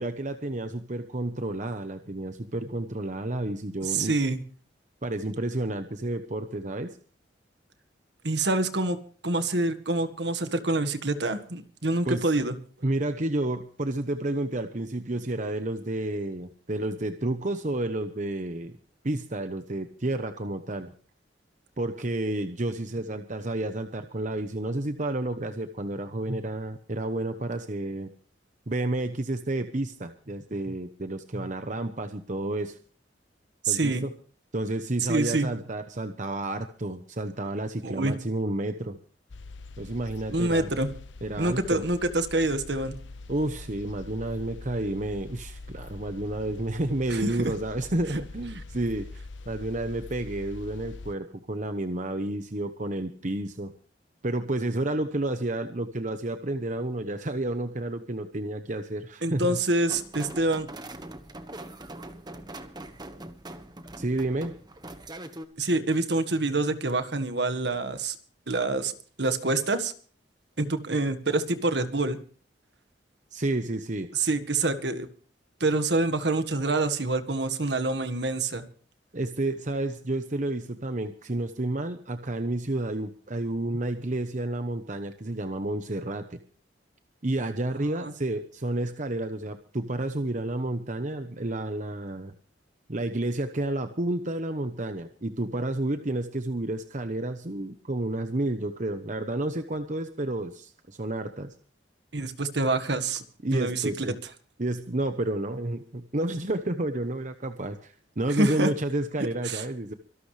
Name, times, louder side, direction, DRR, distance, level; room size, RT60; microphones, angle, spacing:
voice 1, 0.0-4.1 5.0-7.0 12.0-12.3 12.8-18.8 19.0-20.9 21.8-28.1 28.7-32.8 33.7-34.1 34.5-39.0 39.8-40.7 41.2-41.8 43.3-49.1 49.5-53.7 54.2-59.6 64.0-64.5 73.3-74.1 79.1-86.4 87.2-92.3 92.9-101.5 103.4-104.2 104.6-109.9, right 1 dB, 40° right, 8 dB, 1.0 m, -30 dB
voice 2, 3.8-4.4 8.2-9.0 9.2-12.6 33.6-34.0 35.1-35.5 37.8-38.1 40.3-40.9 41.4-42.9 47.1-47.5 59.2-60.7 65.6-68.2 68.5-68.9 69.2-69.9 70.6-72.2 74.1-75.1 75.6-78.6 88.0-88.1 102.1-103.2 103.5-103.9 108.4-108.7 109.4-109.6, right 2 dB, 65° right, 9 dB, 1.7 m, -26 dB
sound 1, 39.3-51.1, left 3 dB, 85° left, 0.7 m, -43 dB
sound 2, 59.9-65.5, right 1 dB, 25° right, 1.3 m, -42 dB
25.0 x 12.0 x 3.3 m, 0.42 s
head